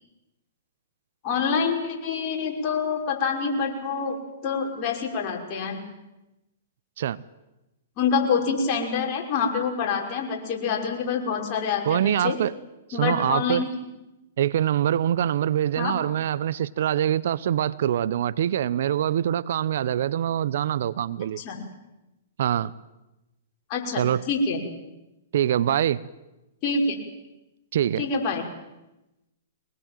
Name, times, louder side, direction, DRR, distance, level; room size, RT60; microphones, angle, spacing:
voice 1, 1.2-4.2 4.4-5.8 8.0-12.4 12.9-13.7 15.8-15.9 21.4-21.6 23.7-24.6 26.6-27.0 28.0-28.4, left 5 dB, 40° left, 1 dB, 5.8 m, -26 dB
voice 2, 11.8-12.5 13.0-13.6 14.4-21.4 22.4-22.7 24.0-24.2 25.3-26.0 27.7-28.0, right 10 dB, 65° right, 18 dB, 0.8 m, -24 dB
23.0 x 20.0 x 9.2 m, 0.97 s
hypercardioid pair, 120°, 0 cm